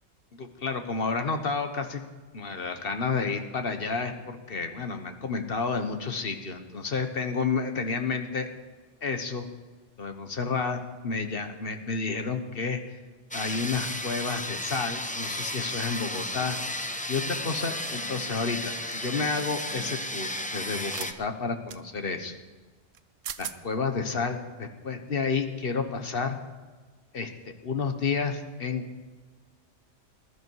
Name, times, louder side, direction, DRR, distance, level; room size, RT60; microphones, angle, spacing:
voice 1, 0.4-2.0 2.3-8.5 9.0-9.5 10.0-13.0 13.3-16.6 17.1-22.3 23.4-26.4 27.1-27.3 27.6-28.9, left 4 dB, 50° left, 7 dB, 1.3 m, -30 dB
sound 1, 13.3-21.1, left 1 dB, 10° left, 0.6 m, -34 dB
sound 2, 18.9-19.1 20.8-21.1 21.7-21.8 22.9-23.0 23.2-23.6, right 9 dB, 80° right, 1.1 m, -38 dB
20.5 x 11.5 x 4.7 m, 1.4 s
omnidirectional pair, 1.3 m